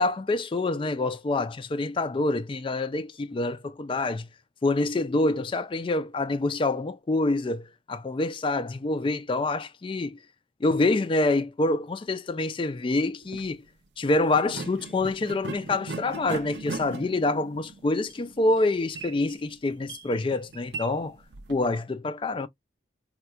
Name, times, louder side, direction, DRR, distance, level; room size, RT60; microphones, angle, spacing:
voice 1, 0.0-4.3 4.6-10.2 10.6-13.6 14.0-21.2 21.5-22.5, left 2 dB, 25° left, 0.3 m, -26 dB
sound 1, 13.2-13.5 14.3-21.8, right 3 dB, 60° right, 0.6 m, -39 dB
4.2 x 2.3 x 2.3 m
head